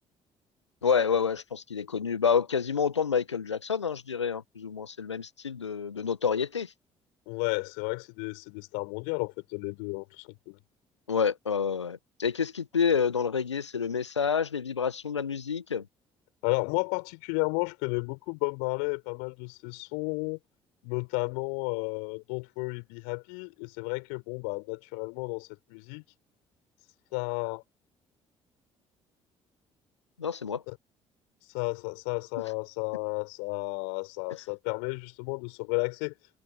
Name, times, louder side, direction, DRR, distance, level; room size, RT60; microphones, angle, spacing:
voice 1, 0.8-6.7 11.1-15.8 30.2-30.6, left 6 dB, 85° left, 1.3 m, -28 dB
voice 2, 7.3-10.6 16.4-20.4 20.8-26.0 27.1-27.6 30.7-30.8 31.5-36.1, left 40 dB or more, 70° left, 5.7 m, -33 dB
figure-of-eight pair, 45°, 14 cm